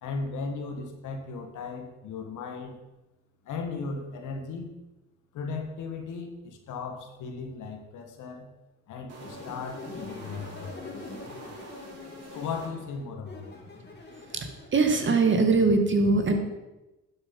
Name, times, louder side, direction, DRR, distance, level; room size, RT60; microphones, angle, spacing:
voice 1, 0.0-2.8 3.4-4.7 5.3-8.5 8.9-10.9 12.3-13.4, left 4 dB, 80° left, 4 dB, 1.8 m, -36 dB
sound 1, 9.1-13.2, equal, 55° right, 3.1 m, -46 dB
sound 2, 9.2-14.7, left 3 dB, 35° left, 2.5 m, -44 dB
voice 2, 14.7-16.4, right 3 dB, 40° right, 5 dB, 1.9 m, -22 dB
11.0 x 6.9 x 5.4 m, 1.0 s
cardioid pair, 90°, 30 cm